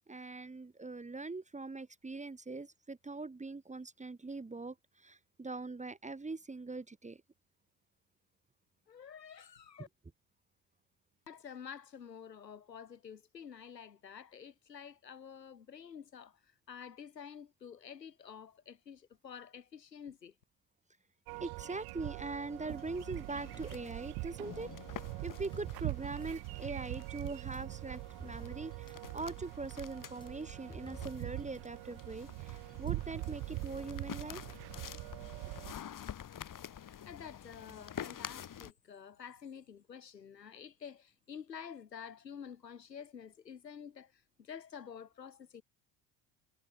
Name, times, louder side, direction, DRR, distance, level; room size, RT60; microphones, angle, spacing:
voice 1, 0.1-7.2 21.4-24.7 25.2-34.4, right 3 dB, 15° right, 2.0 m, -42 dB
voice 2, 8.9-9.9 11.3-20.3 36.8-45.6, left 7 dB, 85° left, 6.7 m, -49 dB
sound 1, 21.3-35.7, right 26 dB, 50° right, 0.7 m, -43 dB
sound 2, 22.0-38.7, left 9 dB, 40° left, 5.1 m, -49 dB
sound 3, 22.9-26.7 27.4-31.6 31.9-32.0 32.7-33.5, left 2 dB, 10° left, 3.9 m, -57 dB
figure-of-eight pair, 60°, 49 cm